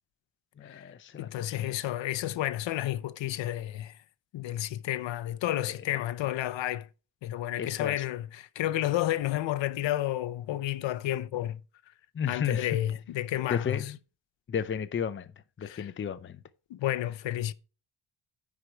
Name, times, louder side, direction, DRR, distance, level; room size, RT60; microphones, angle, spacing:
voice 1, 0.6-1.7 7.6-8.0 12.1-12.8 13.5-14.0 14.5-15.3 15.6-16.4, left 8 dB, 30° left, 0.6 m, -33 dB
voice 2, 1.2-3.9 4.3-6.9 7.2-11.6 12.3-13.9 15.6-15.9 16.7-17.5, left 13 dB, 80° left, 0.7 m, -31 dB
9.9 x 4.7 x 5.8 m
wide cardioid pair, 155°, 44 cm